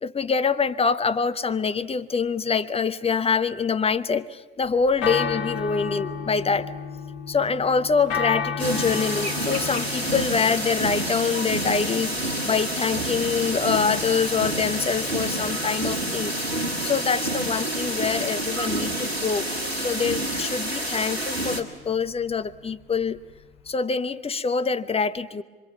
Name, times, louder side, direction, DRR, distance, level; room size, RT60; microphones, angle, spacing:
voice 1, 0.0-6.7 7.3-16.4 16.8-19.5 19.8-23.2 23.7-25.4, left 5 dB, 20° left, 11 dB, 0.9 m, -25 dB
sound 1, 4.6-23.7, left 6 dB, 60° left, 2.3 m, -35 dB
sound 2, 8.6-21.6, right 1 dB, 85° right, 1.8 m, -28 dB
27.5 x 24.5 x 7.1 m, 1.3 s
figure-of-eight pair, 60°, 31 cm